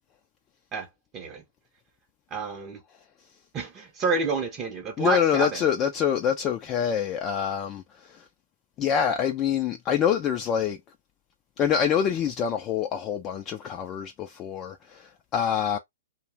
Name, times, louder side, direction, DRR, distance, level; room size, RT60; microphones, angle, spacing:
voice 1, 0.7-1.4 2.3-2.8 3.5-5.6, right 4 dB, 25° right, 0.6 m, -29 dB
voice 2, 5.0-8.2 8.8-10.8 11.6-15.8, left 8 dB, 25° left, 0.3 m, -26 dB
2.4 x 2.0 x 3.2 m
hypercardioid pair, 140°, 0 cm